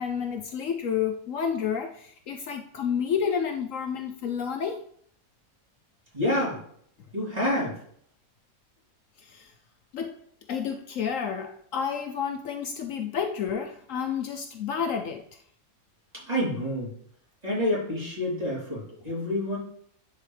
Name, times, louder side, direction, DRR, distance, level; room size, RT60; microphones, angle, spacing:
voice 1, 0.0-4.8 9.2-9.5 9.9-10.2 10.5-15.2, left 7 dB, 65° left, 5 dB, 1.0 m, -30 dB
voice 2, 6.1-6.6 7.1-7.7 16.2-16.9 17.4-19.6, left 1 dB, 25° right, -7 dB, 3.6 m, -28 dB
10.5 x 4.6 x 3.3 m, 0.65 s
omnidirectional pair, 1.5 m